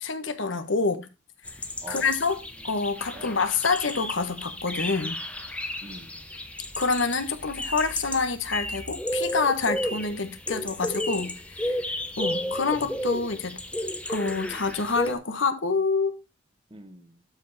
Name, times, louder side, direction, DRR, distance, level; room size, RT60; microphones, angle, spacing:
voice 1, 0.0-1.1 1.9-2.4 2.6-5.2 6.8-13.6 14.1-16.1, left 4 dB, 80° left, 1.3 m, -27 dB
sound 1, 1.4-15.1, left 1 dB, 5° left, 0.8 m, -33 dB
voice 2, 2.4-2.7 3.1-3.4 5.8-6.3 12.3-12.9 16.7-17.2, right 2 dB, 25° right, 1.1 m, -46 dB
12.5 x 5.1 x 4.1 m
head